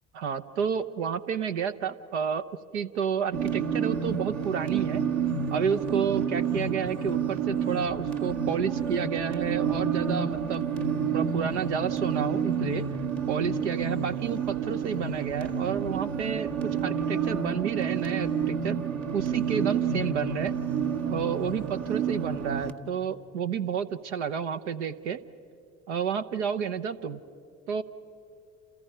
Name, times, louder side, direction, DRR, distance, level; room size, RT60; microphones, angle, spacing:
voice 1, 0.1-2.5 2.7-5.0 5.5-10.6 11.1-12.9 13.3-18.8 19.1-20.5 21.1-25.2 25.9-27.2 27.7-27.8, right 7 dB, 85° right, 10 dB, 0.9 m, -30 dB
sound 1, 3.3-22.7, right 7 dB, 60° right, 1.9 m, -29 dB
29.5 x 28.5 x 5.6 m, 2.5 s
hypercardioid pair, 55°, 34 cm